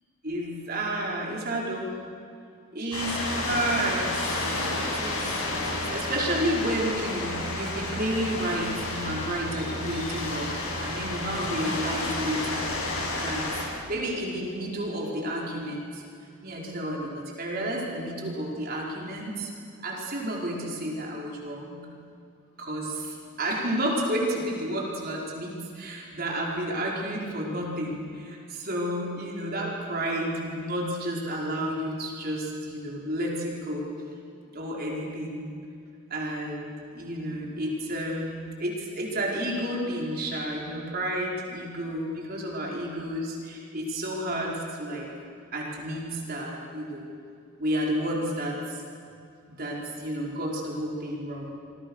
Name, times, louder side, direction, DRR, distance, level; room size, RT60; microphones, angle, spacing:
voice 1, 0.2-1.9 2.7-4.2 4.7-12.7 13.2-13.4 13.9-16.0 16.4-19.5 19.8-21.8 22.6-33.9 34.5-35.5 36.1-38.3 38.6-45.1 45.5-47.1 47.6-48.8 49.5-51.6, right 1 dB, 45° right, -2 dB, 5.1 m, -31 dB
sound 1, 2.9-13.7, left 2 dB, 90° left, 7.2 m, -31 dB
28.0 x 23.5 x 6.5 m, 2.4 s
head